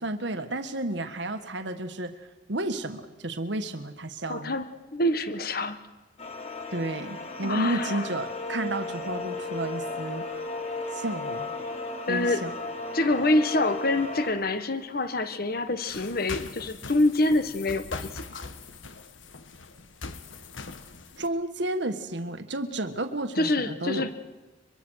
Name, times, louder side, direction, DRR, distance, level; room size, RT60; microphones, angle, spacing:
voice 1, 0.0-4.5 6.7-10.2 10.9-11.5 12.1-12.5 21.2-24.1, right 1 dB, 65° right, 8 dB, 1.5 m, -32 dB
voice 2, 4.3-4.7 4.9-5.8 7.4-8.1 11.6-11.8 12.1-12.4 12.9-18.4 23.4-24.1, left 2 dB, 50° left, 11 dB, 1.5 m, -26 dB
sound 1, 6.2-14.3, left 3 dB, 35° left, 3.3 m, -35 dB
sound 2, 15.9-21.3, left 4 dB, 85° left, 1.5 m, -41 dB
23.5 x 23.5 x 6.4 m, 1.2 s
head